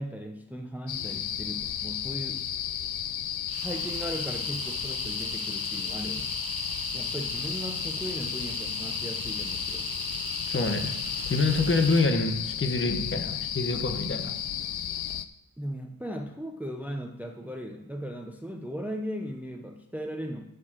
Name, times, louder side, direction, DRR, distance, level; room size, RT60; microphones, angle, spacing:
voice 1, 0.0-2.5 3.6-6.3 6.9-9.9 15.6-20.4, equal, 5° right, 4 dB, 0.7 m, -37 dB
sound 1, 0.9-15.3, left 10 dB, 80° left, 0.5 m, -33 dB
sound 2, 3.5-12.2, right 7 dB, 65° right, 0.7 m, -39 dB
voice 2, 10.5-10.9 11.3-14.3, left 3 dB, 35° left, 6 dB, 1.1 m, -26 dB
7.3 x 6.4 x 7.3 m, 0.85 s
wide cardioid pair, 105°, 37 cm